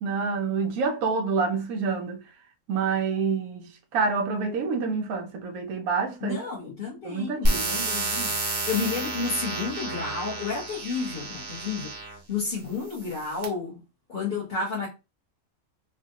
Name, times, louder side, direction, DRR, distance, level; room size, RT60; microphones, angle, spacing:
voice 1, 0.0-2.2 2.7-6.4 7.0-7.8, right 5 dB, 80° right, 1.1 m, -27 dB
voice 2, 6.2-13.8 14.1-14.9, left 4 dB, 35° left, 1.3 m, -31 dB
sound 1, 7.4-12.2 12.9-13.4, right 2 dB, 45° right, 1.0 m, -30 dB
3.6 x 2.5 x 2.7 m
omnidirectional pair, 1.5 m